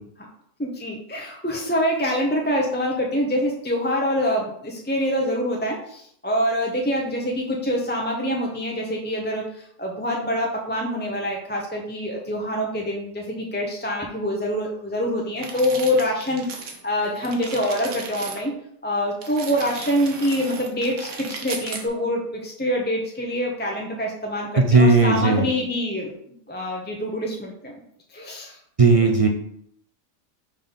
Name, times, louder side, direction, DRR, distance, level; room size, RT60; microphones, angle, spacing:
voice 1, 0.6-18.5 18.8-27.7 28.1-28.6, equal, 10° left, -1 dB, 0.6 m, -25 dB
sound 1, 15.4-16.8 17.0-18.4 19.2-21.9, right 4 dB, 90° right, 1.4 m, -36 dB
voice 2, 24.6-25.4 28.8-29.3, right 3 dB, 45° right, 2 dB, 0.4 m, -16 dB
5.2 x 3.8 x 5.5 m, 0.69 s
omnidirectional pair, 1.4 m